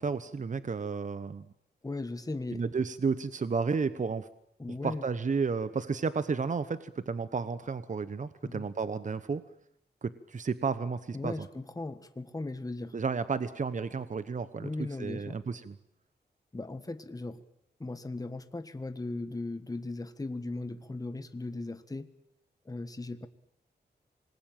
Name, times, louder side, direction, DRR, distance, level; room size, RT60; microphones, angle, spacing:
voice 1, 0.0-1.5 2.5-4.3 4.8-9.4 10.0-11.5 12.9-14.7 15.0-15.8, right 5 dB, 45° right, 13 dB, 1.0 m, -32 dB
voice 2, 1.8-2.6 4.6-5.0 8.4-8.7 11.1-12.9 14.6-15.4 16.5-17.4 17.8-22.1 22.6-23.3, left 2 dB, 20° left, 10 dB, 1.5 m, -37 dB
26.5 x 21.0 x 9.1 m, 0.73 s
wide cardioid pair, 95°, 17 cm